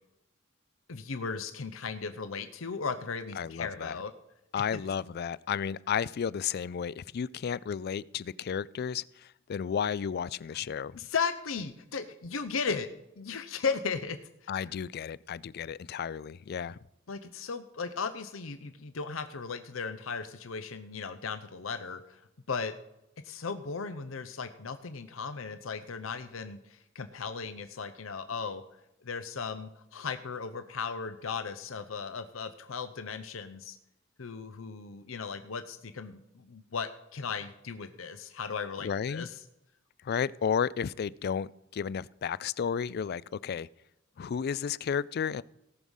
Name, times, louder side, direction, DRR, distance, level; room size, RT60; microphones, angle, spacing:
voice 1, 0.9-4.1 4.7-4.8 11.0-12.9 13.2-14.7 17.1-22.2 22.5-22.7 23.2-28.6 29.0-33.8 34.2-39.4, left 5 dB, 90° left, 10 dB, 0.7 m, -36 dB
voice 2, 3.4-4.0 4.5-11.0 14.5-16.8 38.8-39.3 40.0-43.7 44.2-45.4, left 7 dB, 50° left, 21 dB, 0.3 m, -33 dB
17.5 x 6.3 x 5.4 m, 0.88 s
head